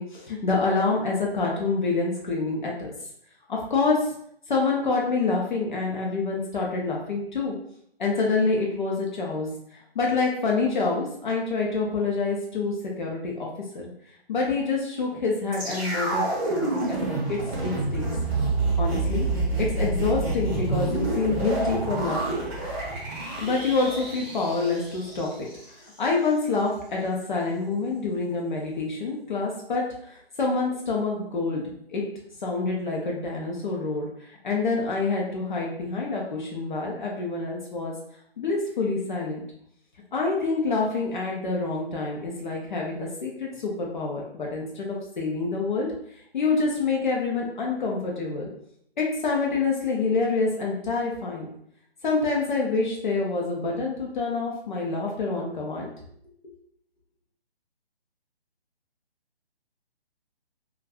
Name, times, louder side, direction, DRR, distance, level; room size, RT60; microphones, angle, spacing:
voice 1, 0.0-2.9 3.5-4.1 4.5-7.5 8.0-13.5 13.7-13.9 14.3-18.1 18.8-19.3 19.6-22.5 23.4-25.3 26.0-31.6 31.9-32.0 32.4-37.9 38.4-39.4 40.1-45.9 46.3-48.5 49.0-51.5 52.0-55.9, left 3 dB, 50° left, -2 dB, 0.6 m, -27 dB
sound 1, 15.5-25.7 25.9-26.0, right 2 dB, 10° right, 0.6 m, -28 dB
2.5 x 2.3 x 3.4 m, 0.69 s
hypercardioid pair, 150°, 32 cm